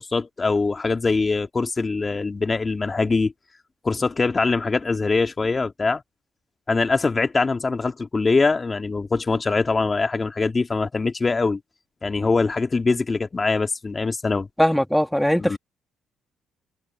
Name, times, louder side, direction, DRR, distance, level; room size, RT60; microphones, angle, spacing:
voice 1, 0.0-3.3 3.8-6.0 6.7-11.6 12.0-14.5 15.4-15.6, left 4 dB, 30° left, 2.4 m, -23 dB
voice 2, 14.6-15.6, equal, 5° left, 2.5 m, -20 dB
supercardioid pair, 75°, 0 cm